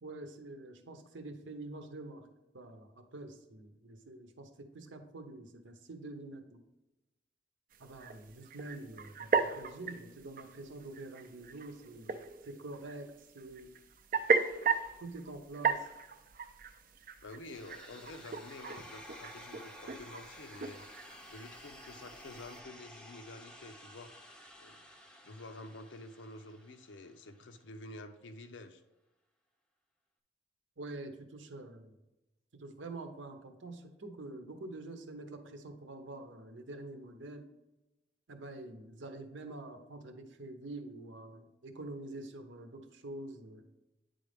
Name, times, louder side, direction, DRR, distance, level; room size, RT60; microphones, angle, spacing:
voice 1, 0.0-2.3 2.5-6.6 7.8-13.8 15.0-15.9 30.8-32.0 32.5-37.5 38.3-43.7, right 2 dB, 85° right, 6 dB, 0.8 m, -46 dB
sound 1, 7.7-22.6, right 5 dB, 45° right, 0.4 m, -37 dB
voice 2, 17.2-20.9 21.3-24.1 24.6-24.8 25.2-28.8, left 2 dB, 80° left, 8 dB, 0.6 m, -49 dB
sound 2, 17.5-27.5, left 1 dB, 5° left, 0.5 m, -53 dB
9.4 x 3.9 x 3.5 m, 1.0 s
head